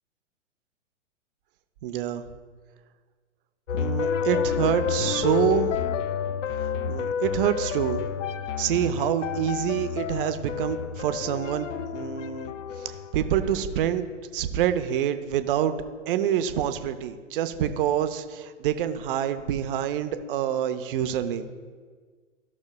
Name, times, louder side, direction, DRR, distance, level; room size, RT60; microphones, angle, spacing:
voice 1, 1.8-2.2 3.7-5.9 6.9-8.0 8.6-11.7 11.9-12.5 12.8-14.1 14.3-15.8 16.1-21.5, right 10 dB, 45° right, 10 dB, 0.6 m, -26 dB
sound 1, 3.7-13.9, left 7 dB, 75° left, 0.5 m, -30 dB
14.0 x 6.1 x 2.2 m, 1.6 s
figure-of-eight pair, 110°, 38 cm